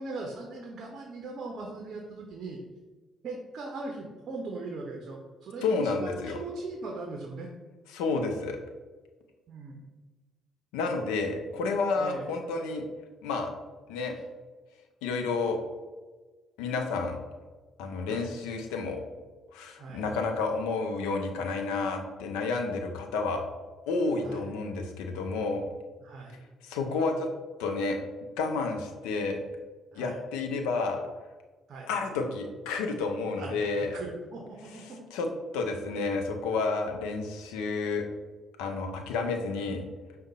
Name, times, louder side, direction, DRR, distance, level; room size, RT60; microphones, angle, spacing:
voice 1, 0.0-2.6 3.2-7.5 9.5-9.8 12.0-12.2 18.1-18.3 19.8-20.0 24.2-24.4 26.0-26.4 29.9-30.2 31.7-31.9 33.4-33.6 33.9-35.1, right 3 dB, 50° right, 1 dB, 0.6 m, -39 dB
voice 2, 5.6-6.4 7.9-8.6 10.7-12.8 13.2-13.5 13.9-14.2 15.0-15.6 16.6-17.2 17.8-19.0 19.5-23.4 23.8-25.6 26.6-27.3 27.6-28.0 28.4-29.4 29.9-31.0 31.9-34.0 34.9-38.0 38.6-39.8, left 4 dB, 70° left, 4 dB, 0.5 m, -30 dB
5.0 x 2.1 x 4.0 m, 1.3 s
figure-of-eight pair, 45°, 0 cm